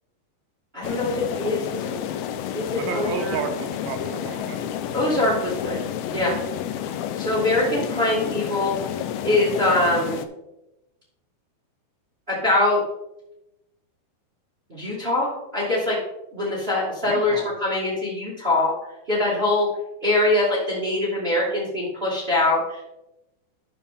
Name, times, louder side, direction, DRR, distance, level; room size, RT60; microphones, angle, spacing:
voice 1, 0.7-2.0 2.5-3.4 4.9-5.8 6.1-6.4 7.2-9.0 9.2-10.3 12.3-12.8 14.7-16.0 16.3-18.7 19.1-19.7 20.0-22.8, left 2 dB, 55° right, -7 dB, 0.6 m, -23 dB
sound 1, 0.8-10.3, left 10 dB, 80° left, 2.3 m, -30 dB
voice 2, 2.8-4.8 17.1-17.5, right 7 dB, 90° right, 6 dB, 3.1 m, -32 dB
11.5 x 5.4 x 3.6 m, 0.92 s
omnidirectional pair, 4.8 m